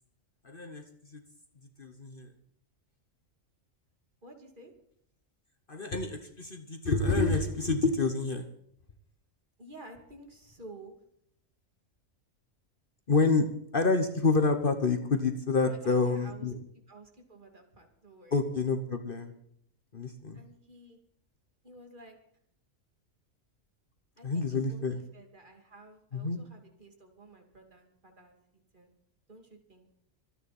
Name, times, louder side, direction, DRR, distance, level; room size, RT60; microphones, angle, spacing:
voice 1, 0.4-1.2 1.8-2.3 5.7-8.5 13.1-13.5 13.7-16.6 18.3-19.3 19.9-20.4 24.2-25.0 26.1-26.4, left 3 dB, 45° left, 6 dB, 1.3 m, -28 dB
voice 2, 4.2-4.7 9.6-11.0 15.6-16.5 16.9-18.4 20.3-21.0 21.6-22.2 24.2-28.4 28.7-28.9 29.3-29.9, right 2 dB, 40° right, 3 dB, 3.0 m, -52 dB
26.0 x 9.9 x 4.3 m, 0.70 s
omnidirectional pair, 1.3 m